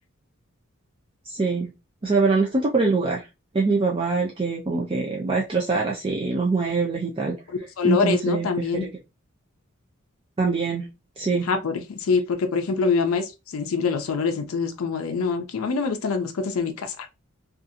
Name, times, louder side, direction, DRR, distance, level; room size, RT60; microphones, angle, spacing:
voice 1, 1.3-1.7 2.0-3.3 3.5-7.3 7.8-8.9 10.4-10.9 11.2-11.5, right 4 dB, 25° right, 0.4 m, -24 dB
voice 2, 7.8-8.9 11.3-17.1, left 5 dB, 90° left, 0.4 m, -25 dB
2.7 x 2.4 x 2.4 m
head